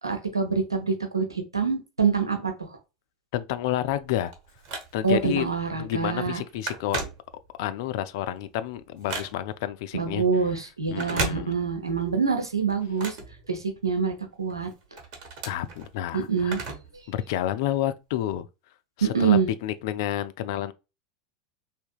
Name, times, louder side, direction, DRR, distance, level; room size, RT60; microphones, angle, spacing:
voice 1, 0.0-2.8 5.0-6.4 9.9-13.2 13.5-14.7 16.1-16.6 19.0-19.5, right 5 dB, 90° right, 0.7 m, -25 dB
voice 2, 3.3-4.3 4.9-5.5 5.8-7.0 7.6-10.2 10.9-11.6 15.4-16.5 17.1-18.5 19.0-20.7, left 12 dB, 60° left, 0.3 m, -29 dB
Telephone, 3.8-5.3 5.8-6.0 6.2-7.7 8.2-9.7 10.9-12.0 12.3-14.0 14.5-17.0 17.3-17.4 18.3-18.4, right 4 dB, 45° right, 1.0 m, -36 dB
3.5 x 2.8 x 2.3 m
figure-of-eight pair, 85°, 2 cm